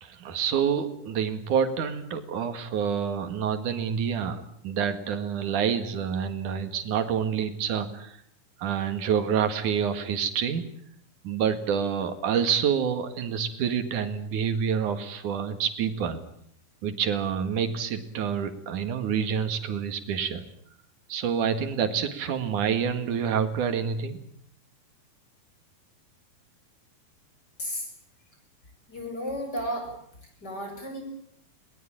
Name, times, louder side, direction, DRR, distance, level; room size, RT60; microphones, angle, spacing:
voice 1, 0.0-8.2 8.6-10.6 11.2-16.2 16.8-20.4 21.1-24.2, right 7 dB, 60° right, 9 dB, 3.2 m, -27 dB
voice 2, 28.9-29.9 30.4-31.0, equal, 25° left, 3 dB, 7.4 m, -33 dB
22.0 x 20.0 x 9.0 m, 0.67 s
omnidirectional pair, 4.4 m